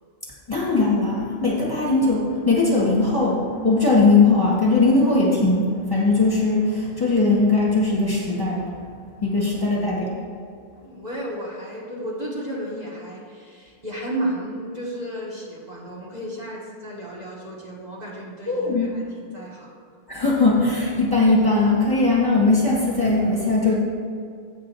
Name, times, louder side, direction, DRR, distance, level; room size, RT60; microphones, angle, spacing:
voice 1, 0.5-8.8 9.2-10.1 18.5-18.9 20.1-23.7, left 3 dB, 20° left, -5 dB, 1.5 m, -19 dB
voice 2, 9.5-10.1 10.6-19.7, right 1 dB, 40° right, -5 dB, 1.7 m, -33 dB
8.1 x 5.0 x 6.0 m, 2.3 s
omnidirectional pair, 1.1 m